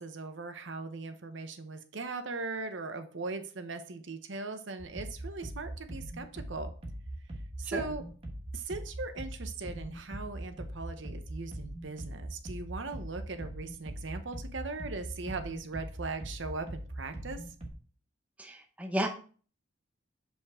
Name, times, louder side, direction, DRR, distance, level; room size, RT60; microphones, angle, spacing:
voice 1, 0.0-6.7 7.6-8.0 8.5-17.4, right 3 dB, 70° right, 9 dB, 0.8 m, -39 dB
sound 1, 4.8-17.7, right 1 dB, 30° right, 1.1 m, -41 dB
voice 2, 18.4-19.1, equal, 5° right, 3 dB, 0.6 m, -33 dB
6.8 x 5.2 x 3.6 m, 0.42 s
head